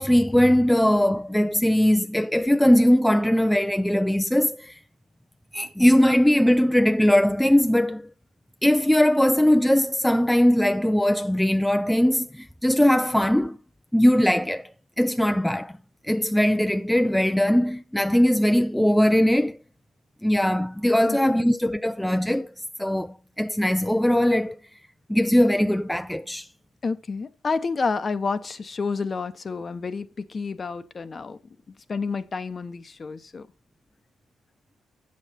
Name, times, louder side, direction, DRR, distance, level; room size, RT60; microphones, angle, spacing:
voice 1, 0.0-4.8 5.5-8.1 8.6-13.6 13.9-14.7 15.0-15.7 16.0-19.6 20.2-22.5 22.8-24.6 25.1-26.5, equal, 5° left, 0.3 m, -20 dB
voice 2, 21.1-21.4 26.8-31.4 31.9-33.5, left 4 dB, 35° left, 0.7 m, -29 dB
7.8 x 7.4 x 4.2 m
cardioid pair, 90°, 0 cm